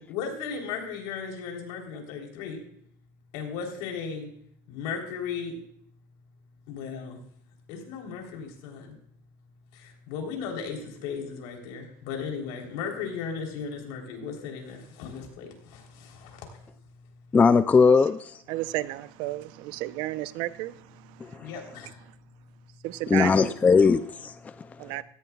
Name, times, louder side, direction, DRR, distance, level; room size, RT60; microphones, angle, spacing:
voice 1, 0.1-2.6 3.3-4.3 4.7-5.6 6.7-7.2 7.7-9.0 9.7-16.6 21.4-22.0, left 6 dB, 70° left, 3.6 m, -36 dB
voice 2, 17.3-18.4 21.2-21.3 23.1-24.7, left 5 dB, 15° left, 0.4 m, -20 dB
voice 3, 18.5-21.5 22.1-22.2 22.8-23.5 24.8-25.0, right 16 dB, 65° right, 0.7 m, -33 dB
17.0 x 15.0 x 2.4 m
supercardioid pair, 130°, 9 cm